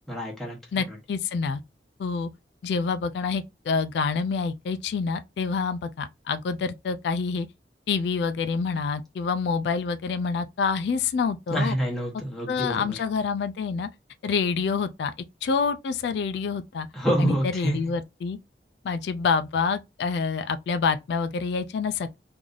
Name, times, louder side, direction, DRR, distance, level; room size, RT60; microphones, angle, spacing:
voice 1, 0.1-0.6 0.9-1.0 11.5-13.0 16.9-17.8, right 1 dB, ahead, 1.0 m, -27 dB
voice 2, 0.7-1.6 2.0-2.3 2.6-7.5 7.9-11.8 12.5-13.9 14.2-15.1 15.4-16.9 17.2-18.4 18.8-22.2, left 5 dB, 65° left, 0.3 m, -27 dB
3.1 x 2.6 x 3.8 m
head